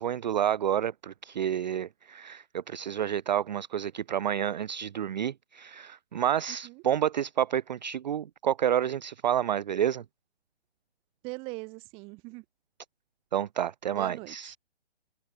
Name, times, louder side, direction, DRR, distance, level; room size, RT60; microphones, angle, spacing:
voice 1, 0.0-10.0 13.3-14.6, right 10 dB, 40° right, 0.5 m, -29 dB
voice 2, 11.2-12.4 13.9-14.5, right 28 dB, 15° right, 1.1 m, -41 dB
hypercardioid pair, 150°, 34 cm